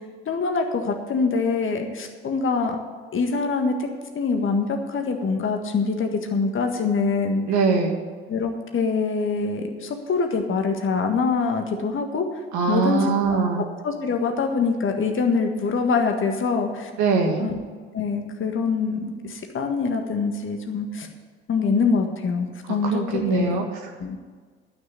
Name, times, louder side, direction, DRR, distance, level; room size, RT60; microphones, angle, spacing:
voice 1, 0.3-2.8 3.1-3.9 4.1-7.4 8.3-12.4 12.7-16.9 17.4-17.6 17.9-21.1 21.5-23.6 24.0-24.2, left 4 dB, 40° left, 4 dB, 1.7 m, -24 dB
voice 2, 7.5-8.0 12.5-13.6 17.0-17.5 22.7-23.9, right 5 dB, 55° right, 2 dB, 2.1 m, -22 dB
12.0 x 6.5 x 8.6 m, 1.5 s
figure-of-eight pair, 55°, 33 cm